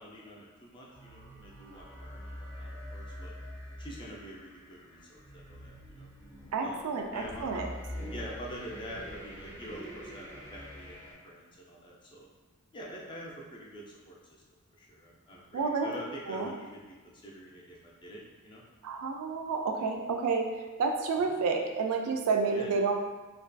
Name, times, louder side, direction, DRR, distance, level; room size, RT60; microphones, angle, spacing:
voice 1, 0.0-3.3 3.8-6.1 6.6-7.5 8.1-12.3 12.7-14.4 14.8-18.6 21.2-21.3 22.5-22.7, equal, 20° left, -3 dB, 0.4 m, -46 dB
sound 1, 0.9-11.1, equal, 20° right, 0.7 m, -45 dB
voice 2, 6.5-7.7 15.5-15.9 16.3-16.5 18.8-20.5 20.8-22.9, right 4 dB, 75° right, 3 dB, 0.3 m, -30 dB
2.5 x 2.3 x 2.2 m, 1.3 s
head